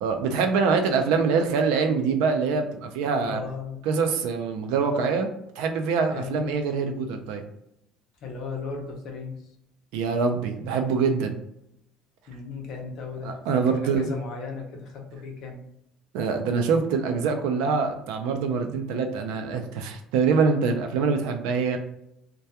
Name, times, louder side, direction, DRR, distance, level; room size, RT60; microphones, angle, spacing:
voice 1, 0.0-3.4 3.8-5.3 5.6-7.4 9.9-11.4 13.2-14.1 16.1-21.8, right 5 dB, 90° right, 6 dB, 0.4 m, -24 dB
voice 2, 3.2-3.8 6.1-6.6 8.2-9.4 12.3-15.6, left 4 dB, 45° left, 1 dB, 0.6 m, -36 dB
2.2 x 2.2 x 2.7 m, 0.79 s
cardioid pair, 180°, 0 cm